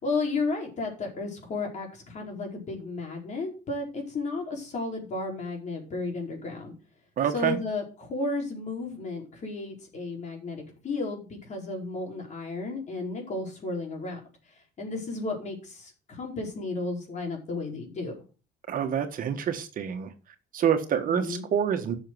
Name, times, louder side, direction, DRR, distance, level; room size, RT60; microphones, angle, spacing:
voice 1, 0.0-6.7 7.3-14.2 14.8-18.1 21.0-21.5, left 3 dB, 45° left, 1 dB, 4.6 m, -33 dB
voice 2, 7.2-7.6 18.7-20.1 20.5-21.9, right 8 dB, 55° right, 7 dB, 1.6 m, -27 dB
10.5 x 6.6 x 6.2 m, 0.35 s
cardioid pair, 110°, 17 cm